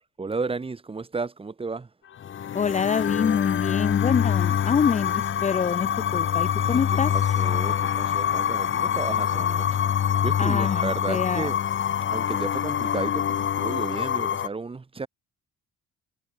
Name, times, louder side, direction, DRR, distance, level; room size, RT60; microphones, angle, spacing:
voice 1, 0.2-1.9 6.6-9.9 10.2-11.6 12.1-15.1, right 4 dB, 15° right, 2.3 m, -33 dB
sound 1, 2.2-14.5, left 9 dB, 40° left, 1.3 m, -25 dB
voice 2, 2.5-7.3 10.4-11.5, left 6 dB, 20° left, 0.7 m, -26 dB
cardioid pair, 175°, 32 cm